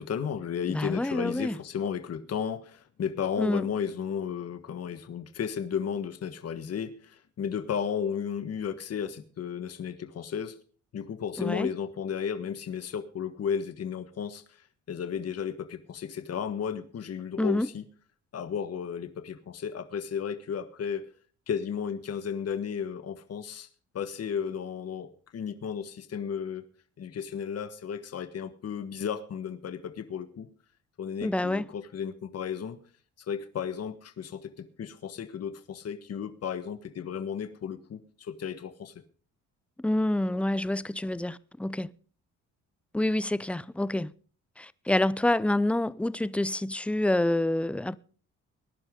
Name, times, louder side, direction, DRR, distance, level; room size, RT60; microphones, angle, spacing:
voice 1, 0.0-10.6 10.9-17.8 18.3-21.1 21.5-23.7 23.9-26.7 27.0-30.5 31.0-32.8 33.3-38.9, left 7 dB, 55° left, 1.5 m, -34 dB
voice 2, 0.7-1.6 3.4-3.6 11.4-11.7 17.4-17.7 31.2-31.7 39.8-41.9 42.9-44.1 44.6-48.0, left 1 dB, 5° left, 0.6 m, -27 dB
19.5 x 11.0 x 3.8 m
cardioid pair, 90°, 30 cm